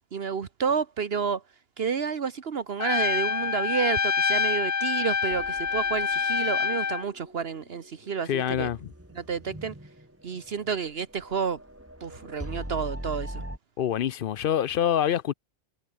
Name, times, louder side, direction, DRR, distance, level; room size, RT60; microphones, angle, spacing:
voice 1, 0.1-1.4 1.8-8.7 9.1-9.7 10.2-11.6 12.0-13.4, right 6 dB, 70° right, 1.4 m, -30 dB
Trumpet, 2.8-7.0, left 6 dB, 45° left, 1.1 m, -26 dB
sound 1, 5.3-13.6, equal, 15° right, 4.2 m, -42 dB
voice 2, 8.3-8.9 13.8-15.3, left 10 dB, 65° left, 0.7 m, -26 dB
omnidirectional pair, 1.1 m